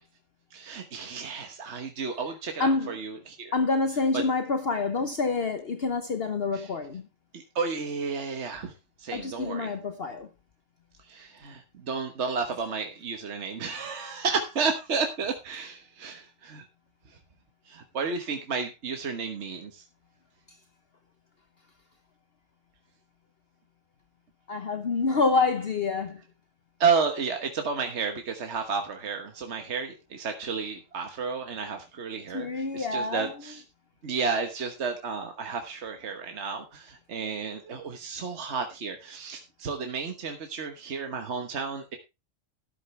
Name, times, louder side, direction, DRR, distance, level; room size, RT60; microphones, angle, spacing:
voice 1, 0.5-3.5 4.1-4.2 6.5-6.7 7.3-8.7 9.0-9.7 11.1-16.6 17.7-19.8 26.8-33.6 34.0-42.0, right 5 dB, 60° right, 1.5 m, -32 dB
voice 2, 2.6-2.9 3.5-7.0 9.1-10.3 24.5-26.2 32.3-33.3, left 3 dB, 50° left, 1.2 m, -27 dB
12.5 x 10.0 x 3.2 m
omnidirectional pair, 1.3 m